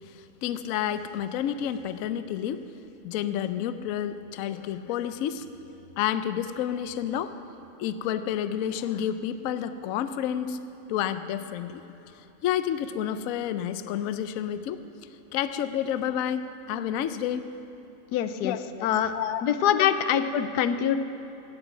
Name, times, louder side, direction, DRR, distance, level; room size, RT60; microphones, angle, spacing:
voice 1, 0.4-2.6 3.0-5.5 6.0-7.4 7.8-10.6 10.9-11.8 12.4-14.8 15.3-17.5 18.4-18.6 19.1-19.4 19.8-19.9, left 10 dB, 70° left, 11 dB, 0.9 m, -29 dB
voice 2, 18.1-18.6 18.8-19.1 19.4-21.0, left 9 dB, 90° left, 11 dB, 1.2 m, -24 dB
17.0 x 8.2 x 5.9 m, 2.9 s
omnidirectional pair, 1.7 m